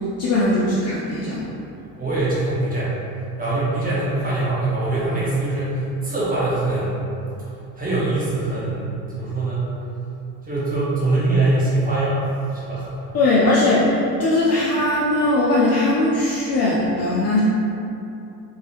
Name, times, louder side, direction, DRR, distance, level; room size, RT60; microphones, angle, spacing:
voice 1, 0.2-1.5 13.1-17.4, left 2 dB, 35° left, -6 dB, 0.4 m, -19 dB
voice 2, 2.0-2.9 3.4-6.9 7.7-9.7 10.4-13.2, right 2 dB, 15° right, -9 dB, 1.3 m, -23 dB
3.1 x 2.7 x 2.8 m, 2.7 s
hypercardioid pair, 60°, 49 cm